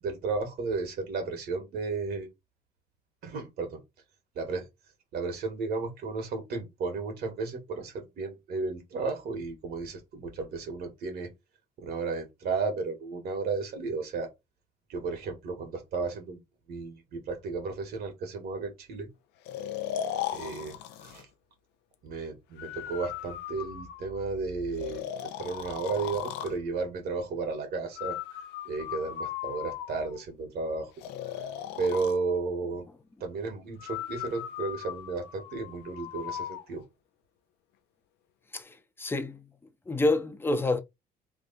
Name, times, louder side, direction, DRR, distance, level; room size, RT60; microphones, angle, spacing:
voice 1, 0.0-2.3 3.2-3.8 4.4-4.7 5.1-11.3 11.8-14.3 14.9-16.4 16.7-19.1 20.3-21.3 22.0-30.9 31.8-32.8 33.2-36.8, right 4 dB, 65° right, 1.7 m, -33 dB
Breathing, 19.4-21.2 22.6-24.2 24.8-26.6 28.0-30.2 31.0-32.2 33.8-36.6, left 10 dB, 90° left, 0.5 m, -37 dB
voice 2, 38.5-39.4 39.9-40.8, left 2 dB, 15° left, 0.6 m, -28 dB
3.5 x 2.4 x 3.9 m
cardioid pair, 110°, 17 cm